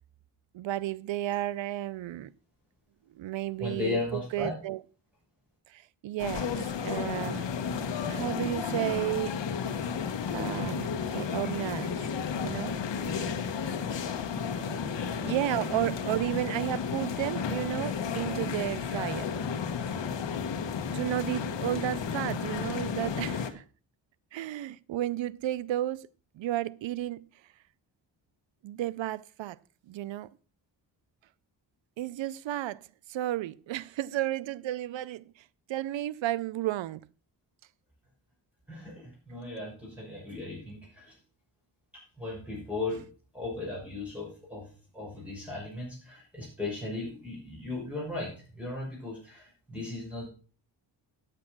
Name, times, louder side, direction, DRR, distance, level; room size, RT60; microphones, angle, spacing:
voice 1, 0.5-2.3 3.1-4.8 5.7-7.5 8.1-9.4 9.7-9.8 10.3-12.0 12.4-13.6 15.2-19.3 19.9-20.1 20.9-23.6 24.3-26.1 26.3-27.2 28.6-29.6 29.9-30.3 32.0-32.8 33.1-37.0, right 14 dB, 90° right, 0.6 m, -33 dB
voice 2, 3.6-4.5 14.5-15.3 38.7-41.1 41.9-43.0 43.3-44.7 44.9-50.3, left 2 dB, 5° right, 6.2 m, -37 dB
sound 1, 6.2-23.5, left 6 dB, 75° left, 1.3 m, -33 dB
9.6 x 7.6 x 6.0 m
cardioid pair, 90°, 44 cm